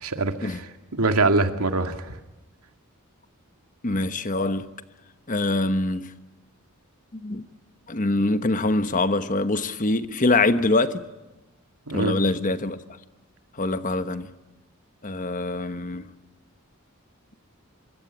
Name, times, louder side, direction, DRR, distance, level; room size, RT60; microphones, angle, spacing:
voice 1, 0.0-2.2 11.9-12.2, right 3 dB, 85° right, 2.2 m, -24 dB
voice 2, 3.8-4.7 5.3-6.1 7.2-7.4 7.9-11.0 11.9-12.8 13.6-14.3 15.0-16.1, left 2 dB, 35° left, 1.2 m, -24 dB
26.5 x 24.5 x 8.7 m
head